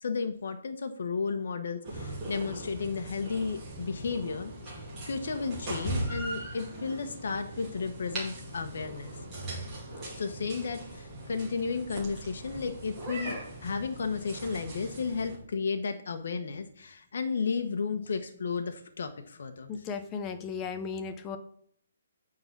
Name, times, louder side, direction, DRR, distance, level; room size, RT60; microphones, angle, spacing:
voice 1, 0.0-9.2 10.1-13.3 13.6-19.7, left 5 dB, 55° left, 6 dB, 1.1 m, -33 dB
sound 1, 1.8-15.4, right 1 dB, 10° right, 2.2 m, -39 dB
voice 2, 19.7-21.4, left 5 dB, 10° left, 9 dB, 0.5 m, -36 dB
9.1 x 3.9 x 7.2 m, 0.64 s
hypercardioid pair, 180°, 0 cm